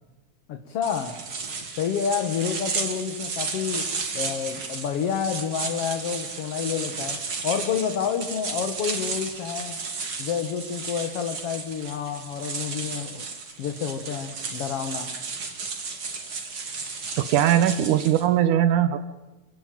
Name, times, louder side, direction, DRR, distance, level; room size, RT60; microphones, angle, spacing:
voice 1, 0.5-1.2 1.8-3.9 4.1-9.8 10.2-13.2 13.6-15.1, left 7 dB, 55° left, 7 dB, 2.2 m, -29 dB
sound 1, 0.8-18.3, right 4 dB, 45° right, 3.3 m, -33 dB
voice 2, 17.2-19.0, right 11 dB, 85° right, 11 dB, 2.6 m, -20 dB
27.0 x 18.0 x 9.3 m, 1.1 s
omnidirectional pair, 3.4 m